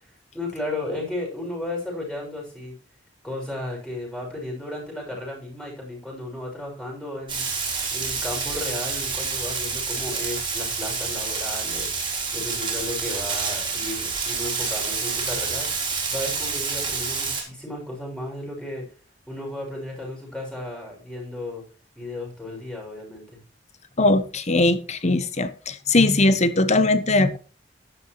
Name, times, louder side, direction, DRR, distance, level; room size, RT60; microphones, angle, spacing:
voice 1, 0.0-2.7 3.2-7.5 7.9-15.7 16.1-18.8 19.3-21.6 21.9-23.4, left 1 dB, 5° left, 6.4 m, -34 dB
Frying (food), 7.3-17.4, right 5 dB, 25° right, 3.7 m, -28 dB
voice 2, 24.0-27.4, left 2 dB, 40° left, 1.1 m, -20 dB
12.5 x 11.0 x 3.1 m
head